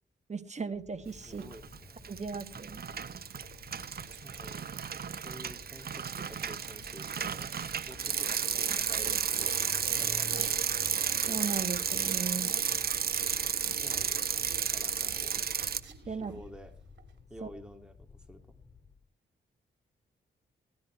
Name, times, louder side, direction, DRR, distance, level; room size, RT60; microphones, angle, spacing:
voice 1, 0.3-1.4 2.1-2.8 11.3-12.5 16.1-16.3 17.4-17.5, right 5 dB, 35° right, 10 dB, 1.6 m, -37 dB
sound 1, 0.7-19.0, left 4 dB, 30° left, 4.1 m, -53 dB
voice 2, 1.2-2.0 4.2-7.5 7.8-10.8 13.6-15.5 16.0-16.8 17.3-18.6, equal, 5° right, 6 dB, 2.6 m, -51 dB
sound 2, 1.3-17.2, right 7 dB, 70° right, 2.9 m, -55 dB
Bicycle, 1.4-1.8 2.0-15.8, right 7 dB, 55° right, 0.9 m, -32 dB
17.5 x 12.5 x 4.6 m, 0.36 s
cardioid pair, 65°, 19 cm